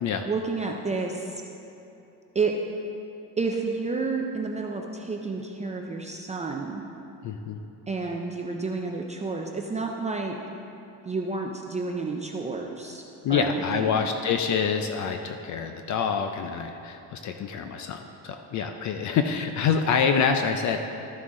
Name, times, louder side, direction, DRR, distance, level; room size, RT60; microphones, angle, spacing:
voice 1, 0.3-1.4 2.3-2.5 3.4-6.8 7.9-10.3 11.0-13.0 13.3-14.1, right 4 dB, 20° right, 1 dB, 0.3 m, -30 dB
voice 2, 7.2-7.6 13.2-21.1, left 6 dB, 50° left, 6 dB, 0.5 m, -26 dB
13.0 x 6.1 x 3.7 m, 2.9 s
cardioid pair, 155°, 39 cm